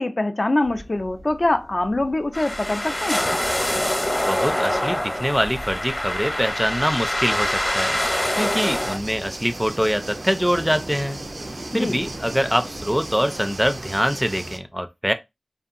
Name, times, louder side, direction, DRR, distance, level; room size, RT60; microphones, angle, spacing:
voice 1, 0.0-3.3 11.7-12.0, left 2 dB, 60° left, 0.4 m, -23 dB
sound 1, 0.6-13.8, equal, 90° right, 0.8 m, -42 dB
sound 2, 2.3-9.0, left 1 dB, 30° left, 0.8 m, -25 dB
voice 2, 4.3-8.0 8.4-11.2 11.7-15.1, equal, 5° right, 0.4 m, -24 dB
sound 3, 8.4-14.6, right 2 dB, 70° right, 0.4 m, -36 dB
2.7 x 2.6 x 2.5 m
wide cardioid pair, 40°, 0 cm